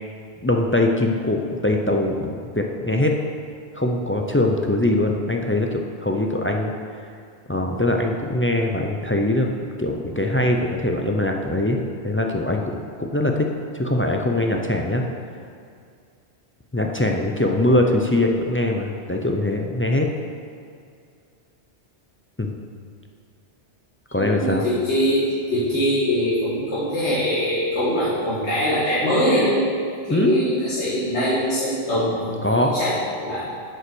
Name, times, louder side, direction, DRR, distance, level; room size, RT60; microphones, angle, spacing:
voice 1, 0.4-3.1 3.7-6.7 7.5-11.8 12.0-13.5 13.7-15.0 16.7-20.1 22.4-22.6 24.1-24.6 30.1-30.4 32.4-32.7, left 1 dB, 20° left, 2 dB, 0.3 m, -22 dB
voice 2, 24.1-29.7 30.0-33.4, equal, 75° left, -10 dB, 2.0 m, -23 dB
8.0 x 5.5 x 6.1 m, 2.3 s
omnidirectional pair, 1.1 m